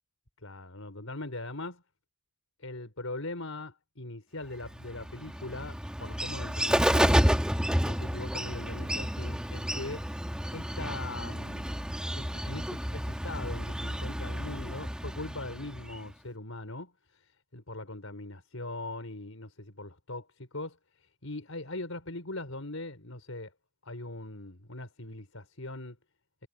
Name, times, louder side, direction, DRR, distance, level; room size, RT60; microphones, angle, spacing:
voice 1, 0.4-1.8 2.6-7.2 7.8-10.1 10.5-11.7 12.2-23.5 23.8-26.0, left 2 dB, 85° left, 4.9 m, -41 dB
Bird, 4.6-16.1, equal, 5° right, 1.7 m, -30 dB
head